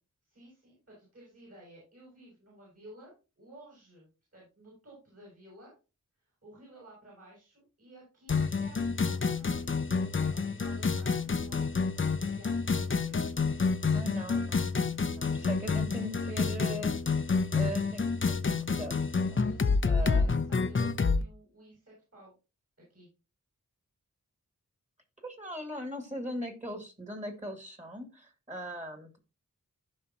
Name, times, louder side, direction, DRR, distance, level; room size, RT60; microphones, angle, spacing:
voice 1, 0.2-5.7 6.2-9.6 10.0-13.6 14.9-15.0 15.3-15.7 19.4-22.3 22.9-23.1, right 1 dB, 50° right, -5 dB, 6.5 m, -54 dB
sound 1, 8.3-21.2, left 4 dB, 40° left, 0.8 m, -29 dB
voice 2, 13.9-14.8 15.1-17.2 17.5-18.4 18.7-19.5 19.8-20.3 25.2-29.2, equal, 20° right, 5 dB, 2.4 m, -40 dB
15.0 x 5.6 x 2.9 m, 0.29 s
wide cardioid pair, 85°, 32 cm